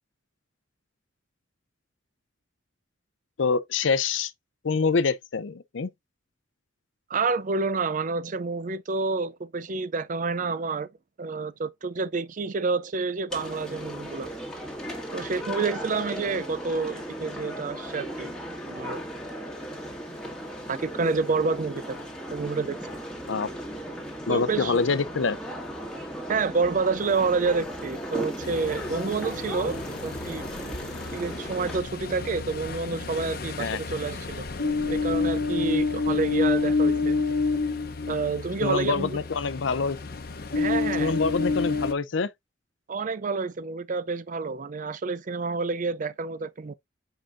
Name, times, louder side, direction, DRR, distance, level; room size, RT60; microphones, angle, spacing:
voice 1, 3.4-4.3 4.6-5.9 23.3-23.5 24.3-25.4 33.6-33.8 38.6-40.0 41.0-42.3, left 4 dB, 75° left, 0.6 m, -25 dB
voice 2, 7.1-10.9 11.2-14.3 15.1-18.3 18.6-19.0 20.7-22.0 22.3-23.0 24.3-24.7 26.3-30.4 31.1-34.5 34.9-37.2 38.1-39.1 40.6-41.1 42.9-46.7, right 4 dB, 40° right, 0.5 m, -28 dB
sound 1, 13.3-31.8, equal, 5° left, 1.9 m, -36 dB
Ocean, 28.4-41.9, left 4 dB, 50° left, 0.9 m, -29 dB
7.5 x 5.0 x 2.6 m
head